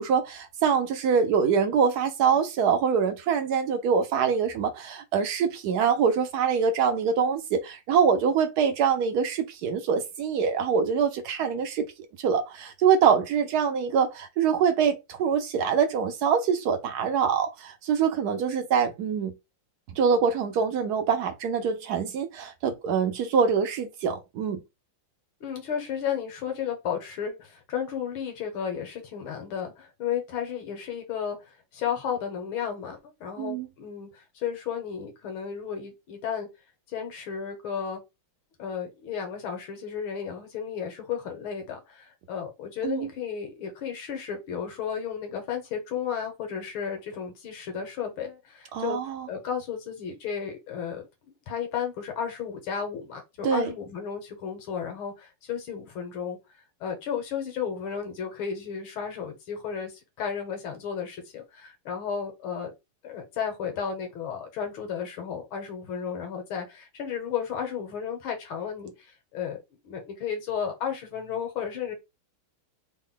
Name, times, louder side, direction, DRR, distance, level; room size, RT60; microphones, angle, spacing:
voice 1, 0.0-11.9 12.2-19.3 20.0-24.6 33.4-33.7 42.8-43.1 48.7-49.3 53.4-53.7, right 6 dB, 70° right, 0.9 m, -24 dB
voice 2, 25.4-36.5 36.9-38.0 38.6-49.0 49.3-51.0 51.5-56.4 56.8-59.9 60.2-62.7 63.0-69.6 69.8-71.9, left 7 dB, 75° left, 1.9 m, -33 dB
3.9 x 2.1 x 3.8 m
omnidirectional pair, 2.3 m